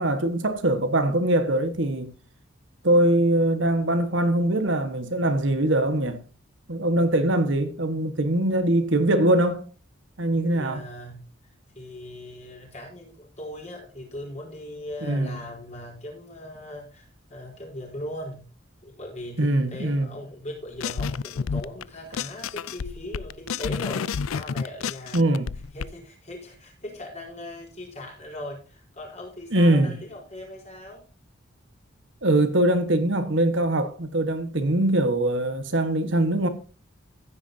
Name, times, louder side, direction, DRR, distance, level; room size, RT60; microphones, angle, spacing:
voice 1, 0.0-2.1 2.8-6.2 6.7-9.6 10.2-10.8 15.0-15.4 19.4-20.1 25.1-25.5 29.5-30.0 32.2-36.5, right 1 dB, 65° right, 1.4 m, -22 dB
voice 2, 10.5-11.2 11.7-18.4 18.8-25.5 25.7-31.0, left 1 dB, 35° left, 5.1 m, -39 dB
sound 1, 20.8-21.8 22.1-25.8, left 6 dB, 90° left, 0.4 m, -30 dB
15.0 x 9.7 x 2.7 m
head